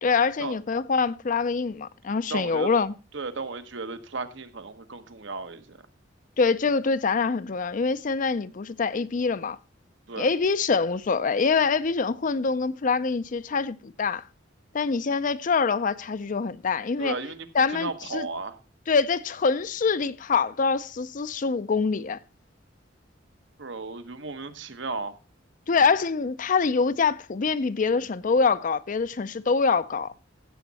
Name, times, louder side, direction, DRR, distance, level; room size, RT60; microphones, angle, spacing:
voice 1, 0.0-2.9 6.4-9.6 10.2-14.2 14.7-17.2 17.5-18.3 18.9-22.2 25.7-30.1, left 4 dB, 45° left, 0.5 m, -25 dB
voice 2, 2.3-2.7 3.1-5.8 10.1-10.3 17.0-18.6 23.6-25.1, right 3 dB, 70° right, 1.1 m, -35 dB
15.5 x 7.3 x 4.1 m
head